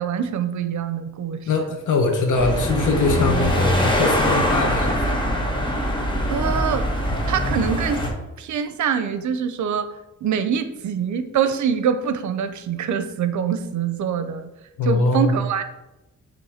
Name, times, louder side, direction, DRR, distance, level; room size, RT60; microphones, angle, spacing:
voice 1, 0.0-1.8 6.3-6.9 7.3-8.1 8.4-9.9 10.2-14.5 14.8-15.6, right 7 dB, 75° right, 10 dB, 0.7 m, -24 dB
voice 2, 1.5-5.2 14.8-15.3, left 3 dB, 85° left, 4 dB, 1.2 m, -22 dB
sound 1, 2.3-8.1, equal, 15° left, 1.2 m, -22 dB
7.0 x 3.1 x 5.7 m, 0.96 s
wide cardioid pair, 130°, 30 cm